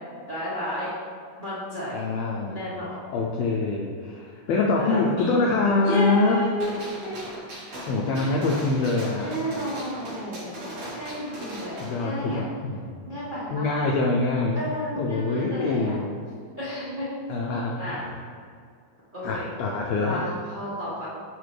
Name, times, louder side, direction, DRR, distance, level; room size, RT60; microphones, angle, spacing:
voice 1, 0.3-0.9 1.4-2.0 2.4-3.0 4.8-5.4 5.8-7.2 8.1-8.7 9.2-12.5 13.1-13.7 14.5-16.0 16.6-17.1 17.8-18.0 19.1-19.5 20.0-21.1, equal, 80° right, -10 dB, 0.4 m, -32 dB
voice 2, 1.9-2.8 3.1-6.5 7.9-9.4 11.8-13.2 13.5-14.7 14.9-16.2 17.3-18.2 19.2-20.3, left 3 dB, 85° left, -1 dB, 1.5 m, -25 dB
Gunshot gunfire, 6.6-12.0, equal, 50° right, 2.2 m, -39 dB
10.0 x 4.0 x 3.2 m, 2.2 s
omnidirectional pair, 3.6 m